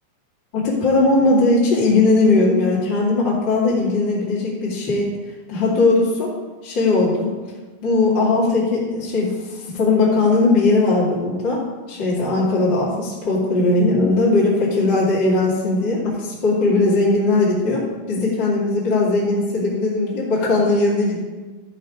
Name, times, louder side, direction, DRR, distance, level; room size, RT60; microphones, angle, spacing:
voice 1, 0.5-5.1 5.5-6.3 6.6-7.3 7.8-11.6 11.9-21.2, left 3 dB, 35° left, -9 dB, 2.3 m, -19 dB
13.0 x 5.4 x 5.1 m, 1.3 s
omnidirectional pair, 5.3 m